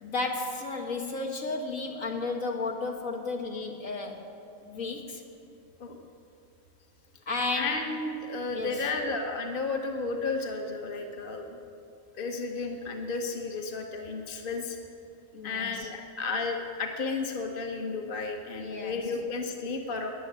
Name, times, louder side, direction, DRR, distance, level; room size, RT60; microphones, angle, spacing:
voice 1, 0.0-4.2 4.6-5.2 7.3-7.7 8.4-8.8 15.3-15.9 18.6-19.0, left 3 dB, 75° left, 1 dB, 2.1 m, -33 dB
voice 2, 7.5-11.6 12.2-14.8 15.4-20.1, left 3 dB, 45° left, 3 dB, 1.4 m, -33 dB
20.5 x 7.1 x 9.5 m, 2.5 s
omnidirectional pair, 1.4 m